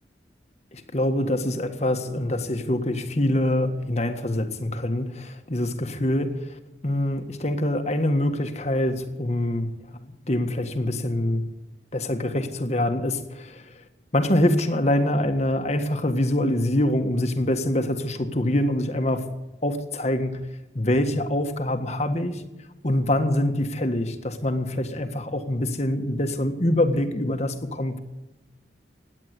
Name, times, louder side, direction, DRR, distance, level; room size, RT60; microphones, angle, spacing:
voice 1, 0.7-6.6 6.8-11.5 11.9-13.6 14.1-19.3 19.6-20.5 20.7-22.4 22.8-28.0, left 1 dB, 40° left, 7 dB, 1.6 m, -25 dB
17.0 x 10.5 x 8.2 m, 1.0 s
head